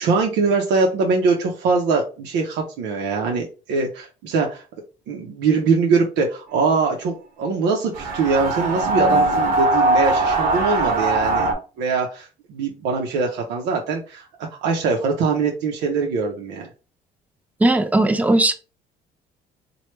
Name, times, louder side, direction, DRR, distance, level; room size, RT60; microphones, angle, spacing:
voice 1, 0.0-4.6 5.1-11.5 11.8-16.7, right 4 dB, 90° right, 1 dB, 0.6 m, -22 dB
sound 1, 7.9-11.5, right 2 dB, 60° right, 0.9 m, -20 dB
voice 2, 17.6-18.5, right 2 dB, 10° right, 8 dB, 0.4 m, -17 dB
3.1 x 2.2 x 3.1 m, 0.34 s
cardioid pair, 110°, 17 cm